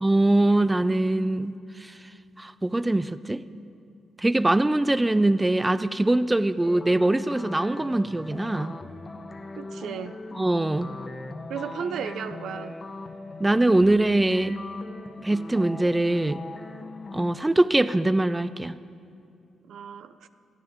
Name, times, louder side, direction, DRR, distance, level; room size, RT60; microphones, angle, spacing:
voice 1, 0.0-2.0 2.4-3.4 4.2-8.7 10.4-10.9 13.4-14.6 15.2-16.4 17.1-18.8, right 2 dB, 15° right, 0.4 m, -22 dB
sound 1, 6.6-17.3, left 2 dB, 35° left, 0.9 m, -39 dB
voice 2, 9.6-10.2 11.5-12.8 19.7-20.3, right 7 dB, 75° right, 0.5 m, -34 dB
26.0 x 9.7 x 3.6 m
supercardioid pair, 60°, 0 cm